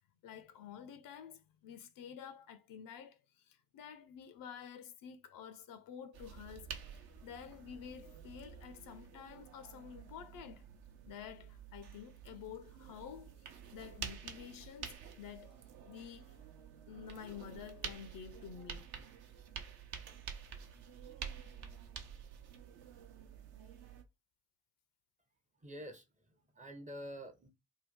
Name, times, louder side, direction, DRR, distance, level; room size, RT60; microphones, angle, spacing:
voice 1, 0.2-6.8 7.2-10.7 11.1-15.6 15.9-16.4 16.9-18.9, left 8 dB, 50° left, 0.5 m, -50 dB
sound 1, 6.1-24.0, right 7 dB, 55° right, 0.8 m, -49 dB
voice 2, 25.5-27.5, equal, 15° right, 0.6 m, -48 dB
2.7 x 2.2 x 3.5 m
hypercardioid pair, 50°, 45 cm